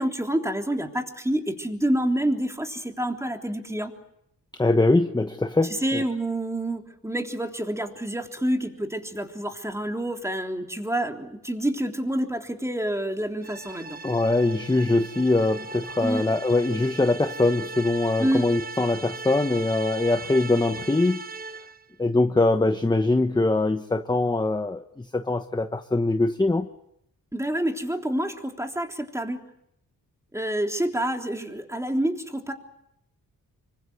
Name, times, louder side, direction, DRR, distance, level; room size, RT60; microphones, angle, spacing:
voice 1, 0.0-3.9 5.8-14.0 16.0-16.3 18.2-18.5 27.3-29.4 30.3-32.5, right 1 dB, 10° right, 3 dB, 3.4 m, -28 dB
voice 2, 4.6-6.0 14.0-21.2 22.0-26.7, left 2 dB, 10° left, 8 dB, 1.1 m, -23 dB
sound 1, 13.4-21.8, right 4 dB, 25° right, 1.2 m, -38 dB
26.0 x 24.5 x 7.9 m, 0.78 s
cardioid pair, 90°, 34 cm